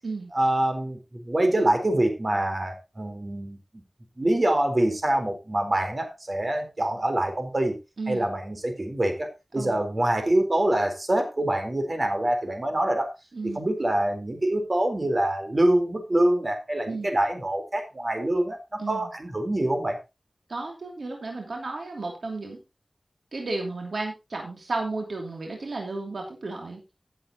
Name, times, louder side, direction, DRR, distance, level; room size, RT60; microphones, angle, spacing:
voice 1, 0.3-3.6 4.2-7.8 8.1-13.1 13.4-20.0, right 1 dB, 45° right, 5 dB, 4.0 m, -25 dB
voice 2, 8.0-8.3 9.6-9.8 13.3-13.6 16.9-17.1 18.8-19.1 20.5-22.6 23.3-26.8, right 3 dB, 90° right, 1 dB, 2.9 m, -33 dB
16.0 x 7.9 x 2.9 m, 0.25 s
wide cardioid pair, 50°, 0 cm